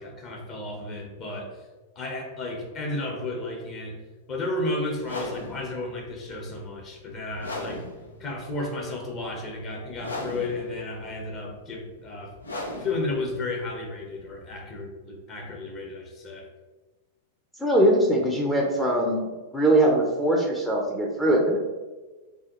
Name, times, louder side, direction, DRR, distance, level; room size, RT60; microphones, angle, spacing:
voice 1, 0.0-1.7 1.9-4.0 4.3-7.8 8.2-12.3 12.8-16.5, left 2 dB, 30° left, 0 dB, 1.1 m, -33 dB
sound 1, 4.9-14.8, left 1 dB, 75° left, 0.7 m, -39 dB
voice 2, 17.6-19.3 19.5-21.6, right 1 dB, 5° left, -2 dB, 0.7 m, -21 dB
4.7 x 3.0 x 3.0 m, 1.2 s
figure-of-eight pair, 95°, 0 cm